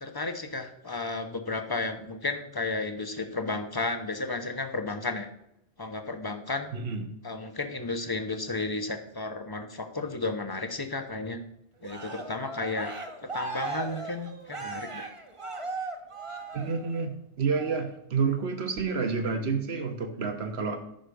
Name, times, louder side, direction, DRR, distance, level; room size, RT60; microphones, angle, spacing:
voice 1, 0.0-5.3 5.8-6.7 7.2-11.4 11.8-12.9 13.2-15.1, left 3 dB, 20° left, 7 dB, 0.7 m, -33 dB
voice 2, 6.7-7.1 16.5-20.8, right 5 dB, 55° right, 7 dB, 1.4 m, -29 dB
Cheering, 11.8-17.1 17.5-17.9, right 3 dB, 30° right, 0.9 m, -38 dB
9.5 x 5.7 x 5.2 m, 0.81 s
omnidirectional pair, 1.3 m